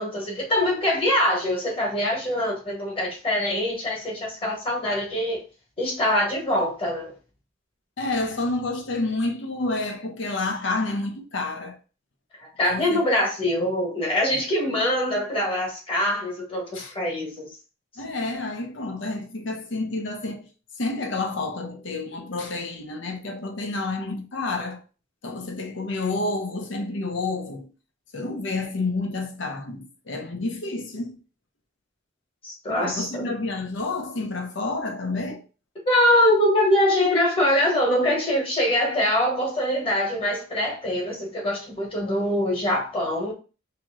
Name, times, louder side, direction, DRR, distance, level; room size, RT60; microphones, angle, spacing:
voice 1, 0.0-5.4 5.8-7.1 12.4-17.5 32.4-33.3 35.9-43.3, left 1 dB, 25° left, 1.4 m, -23 dB
voice 2, 8.0-11.8 12.6-13.0 14.3-14.4 16.7-16.9 18.0-20.5 20.8-24.8 25.2-27.7 28.1-31.2 32.7-35.4, left 2 dB, 65° left, 0.8 m, -29 dB
3.0 x 2.9 x 3.6 m
head